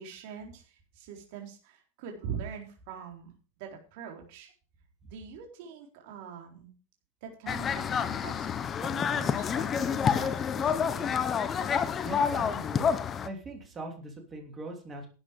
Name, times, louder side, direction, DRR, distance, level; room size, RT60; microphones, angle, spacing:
voice 1, 0.0-4.5 5.1-6.7 7.2-11.2, right 7 dB, 55° right, 2 dB, 4.0 m, -43 dB
sound 1, 7.5-13.3, left 7 dB, 20° left, 0.9 m, -28 dB
voice 2, 12.0-12.9 13.2-15.1, right 2 dB, 15° right, 4 dB, 3.2 m, -40 dB
12.0 x 8.9 x 5.3 m, 0.37 s
supercardioid pair, 155°, 0 cm